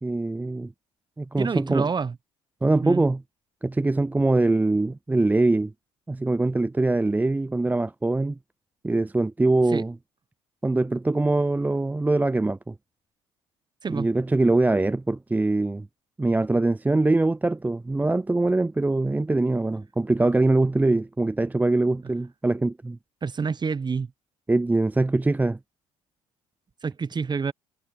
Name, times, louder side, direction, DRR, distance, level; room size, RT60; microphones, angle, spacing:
voice 1, 0.0-0.7 1.2-1.9 2.6-3.2 3.6-5.7 6.1-8.4 8.8-9.9 10.6-12.7 13.9-15.9 16.2-23.0 24.5-25.6, right 2 dB, 10° right, 0.5 m, -23 dB
voice 2, 1.4-2.1 2.8-3.1 9.7-9.8 13.8-14.1 22.0-22.1 23.2-24.1 26.8-27.5, right 5 dB, 30° right, 1.2 m, -28 dB
hypercardioid pair, 60°, 15 cm